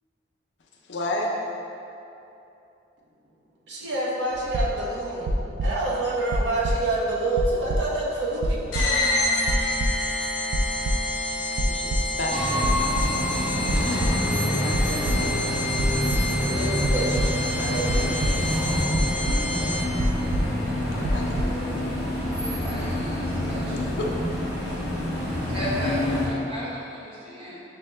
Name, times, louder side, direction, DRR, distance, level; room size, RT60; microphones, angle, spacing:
voice 1, 0.9-1.3 10.8-11.0 11.3-15.5 16.1-16.4 20.8-21.9 23.6-24.1, left 1 dB, 70° left, -1 dB, 0.5 m, -34 dB
voice 2, 3.7-5.3 5.6-8.8 16.4-18.2, right 2 dB, 70° right, -5 dB, 0.7 m, -27 dB
sound 1, 4.3-5.0 5.3-6.0 6.3-7.1 7.3-8.1 8.4-9.2 9.5-10.2 10.5-11.3 11.6-12.2 12.5-13.4 13.7-14.4 14.7-15.5 15.8-16.4 16.8-18.6 18.9-19.7 20.0-20.8 21.0-21.4, right 1 dB, 85° right, 0.3 m, -27 dB
sound 2, 8.7-20.1, left 2 dB, 90° left, 0.8 m, -29 dB
sound 3, 12.3-26.3, left 1 dB, 5° right, 0.8 m, -27 dB
voice 3, 22.3-23.7 25.5-27.6, right 1 dB, 30° right, -8 dB, 0.9 m, -34 dB
5.6 x 2.1 x 3.2 m, 2.8 s
head